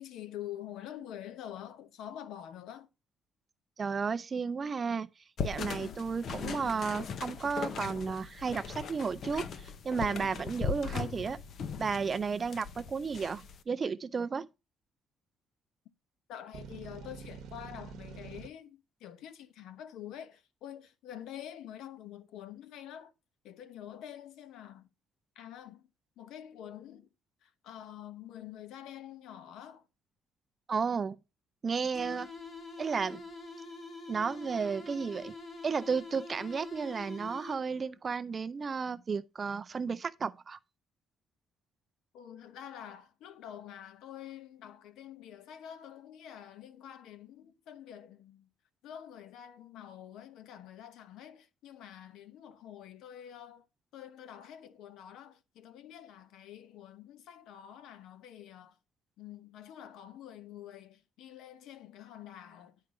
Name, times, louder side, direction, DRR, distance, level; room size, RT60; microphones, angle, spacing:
voice 1, 0.0-2.9 16.3-23.1 23.4-24.9 25.3-25.9 26.2-27.1 27.4-29.9 42.1-48.5 48.8-53.7 53.9-58.8 59.2-62.8, left 10 dB, 75° left, 1.0 m, -47 dB
voice 2, 3.8-5.1 5.4-11.4 11.8-14.5 30.7-31.2 31.6-32.3 32.8-33.2 34.1-35.3 35.6-40.6, right 5 dB, 25° right, 0.4 m, -33 dB
sound 1, 5.4-13.6, left 6 dB, 40° left, 0.6 m, -39 dB
sound 2, 16.5-18.5, right 6 dB, 65° right, 1.0 m, -46 dB
sound 3, 31.9-37.9, left 3 dB, 25° left, 1.2 m, -45 dB
10.5 x 4.7 x 3.7 m
cardioid pair, 175°, 0 cm